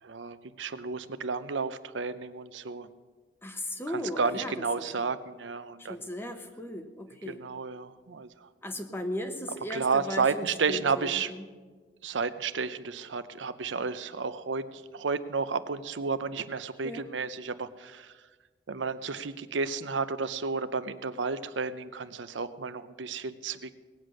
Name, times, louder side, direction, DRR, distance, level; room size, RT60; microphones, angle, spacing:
voice 1, 0.0-2.9 3.9-6.0 7.3-8.5 9.7-11.3 12.0-18.2 18.7-23.8, right 5 dB, 90° right, 12 dB, 0.7 m, -32 dB
voice 2, 3.4-4.5 5.8-7.4 8.6-11.5 16.8-17.1, left 1 dB, 15° left, 6 dB, 1.0 m, -37 dB
19.0 x 8.2 x 6.4 m, 1.4 s
head